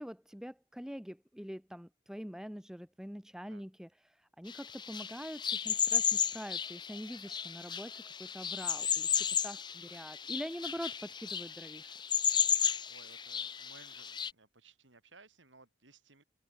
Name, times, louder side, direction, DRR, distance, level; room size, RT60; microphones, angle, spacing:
voice 1, 0.0-12.0, equal, 5° right, 1.0 m, -44 dB
sound 1, 4.5-14.3, left 8 dB, 25° left, 0.8 m, -34 dB
voice 2, 8.7-9.2 12.6-16.2, right 3 dB, 85° right, 6.5 m, -61 dB
head